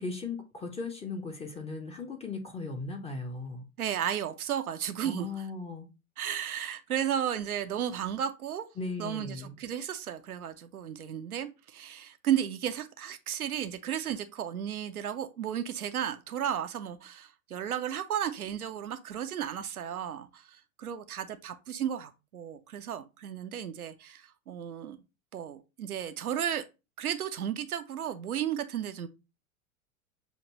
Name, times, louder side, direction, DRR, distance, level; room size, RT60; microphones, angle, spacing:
voice 1, 0.0-3.6 5.0-5.9 8.8-9.6, left 3 dB, 15° left, 0.6 m, -37 dB
voice 2, 3.8-5.4 6.2-8.7 9.0-25.0 25.3-26.6 27.0-29.1, right 9 dB, 80° right, 0.6 m, -34 dB
6.4 x 2.5 x 3.0 m
figure-of-eight pair, 90°, 43 cm